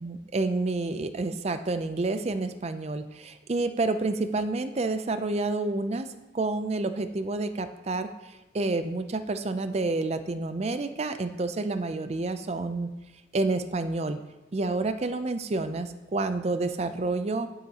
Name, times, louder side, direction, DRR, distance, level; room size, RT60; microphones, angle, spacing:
voice 1, 0.0-6.1 6.3-8.1 8.5-12.9 13.3-14.2 14.5-17.5, right 3 dB, 35° right, 10 dB, 0.4 m, -29 dB
10.5 x 7.9 x 2.9 m, 1.1 s
head